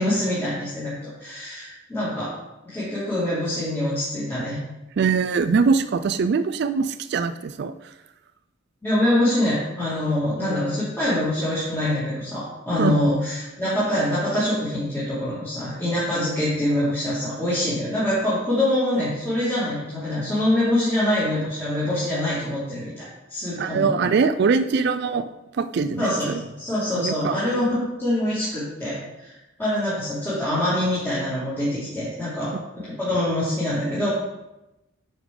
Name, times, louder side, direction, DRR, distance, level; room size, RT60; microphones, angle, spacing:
voice 1, 0.0-2.3 2.7-4.6 8.8-23.0 23.3-23.9 26.0-29.3 29.6-34.1, left 1 dB, 10° left, -12 dB, 2.4 m, -24 dB
voice 2, 5.0-7.7 12.8-13.0 23.6-25.3 25.5-26.4 26.9-27.4, right 5 dB, 55° right, 11 dB, 0.3 m, -22 dB
9.4 x 5.3 x 3.8 m, 0.96 s
head